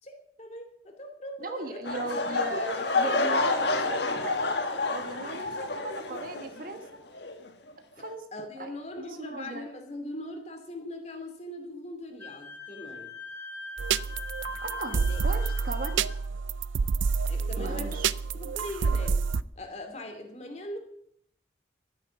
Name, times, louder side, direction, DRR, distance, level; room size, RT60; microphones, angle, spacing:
voice 1, 0.0-1.9 2.2-3.7 8.3-13.1 14.9-15.2 17.3-18.0 18.3-19.3 19.6-20.8, left 1 dB, 35° left, 4 dB, 2.6 m, -41 dB
voice 2, 1.4-4.6 4.9-7.0 8.0-8.2 8.6-8.7 9.0-9.7 14.6-15.0 15.2-16.0 17.6-18.1, right 2 dB, 50° right, 6 dB, 1.5 m, -37 dB
sound 1, 1.8-6.9 7.1-7.5 8.0-8.1, left 3 dB, 65° left, 1.5 m, -29 dB
Wind instrument woodwind instrument, 12.2-16.2, left 4 dB, 10° left, 2.5 m, -42 dB
sound 2, 13.8-19.4, right 5 dB, 85° right, 0.5 m, -28 dB
13.0 x 9.8 x 7.2 m, 0.67 s
head